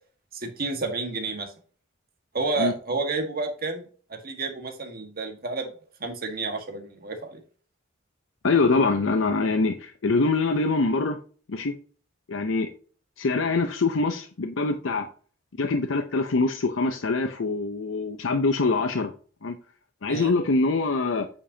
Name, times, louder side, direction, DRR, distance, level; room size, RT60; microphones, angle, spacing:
voice 1, 0.3-1.5 2.3-3.8 4.1-5.7 6.0-7.4 20.1-20.3, right 3 dB, 50° right, 4 dB, 1.6 m, -30 dB
voice 2, 8.4-11.2 11.5-11.7 12.3-12.7 13.2-15.1 15.6-19.1 19.4-19.5 20.0-21.3, left 3 dB, 90° left, 6 dB, 0.7 m, -24 dB
8.6 x 5.4 x 2.8 m, 0.42 s
head